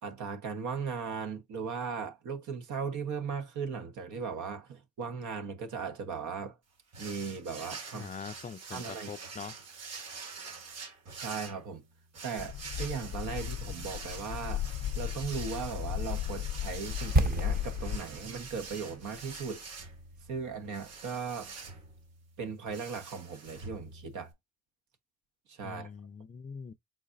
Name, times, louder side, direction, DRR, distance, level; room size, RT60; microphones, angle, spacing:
voice 1, 0.0-6.6 7.0-8.1 8.7-9.1 11.1-11.8 12.2-19.6 20.3-21.5 22.4-24.3 25.5-25.9, right 5 dB, 75° right, 1.2 m, -37 dB
sound 1, 6.9-24.3, right 4 dB, 55° right, 1.8 m, -46 dB
voice 2, 7.9-9.6 25.6-26.7, left 6 dB, 25° left, 0.5 m, -43 dB
sound 2, 12.4-18.0, left 11 dB, 70° left, 0.6 m, -36 dB
sound 3, 17.2-21.1 21.3-21.5, right 1 dB, 30° right, 0.9 m, -32 dB
4.6 x 4.0 x 2.5 m
cardioid pair, 90°, 30 cm